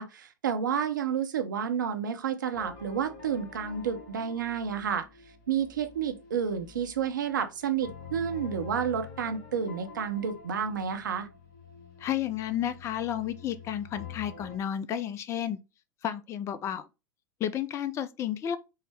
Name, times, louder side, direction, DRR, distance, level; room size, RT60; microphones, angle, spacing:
voice 1, 0.0-5.1 5.5-11.3, right 7 dB, 70° right, 0.6 m, -30 dB
sound 1, 2.5-14.6, left 6 dB, 45° left, 1.3 m, -47 dB
voice 2, 12.0-15.6 16.0-16.9 17.4-18.6, left 10 dB, 25° left, 0.4 m, -32 dB
5.4 x 2.1 x 3.4 m
figure-of-eight pair, 85°, 11 cm